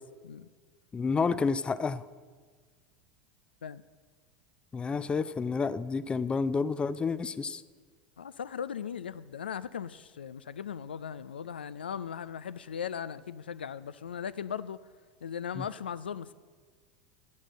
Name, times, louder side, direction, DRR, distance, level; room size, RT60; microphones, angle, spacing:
voice 1, 0.9-2.0 4.7-7.6 15.6-15.7, left 5 dB, 20° left, 0.5 m, -30 dB
voice 2, 8.2-14.8 15.2-16.3, left 8 dB, 80° left, 0.4 m, -38 dB
11.5 x 7.5 x 7.8 m
figure-of-eight pair, 85°, 5 cm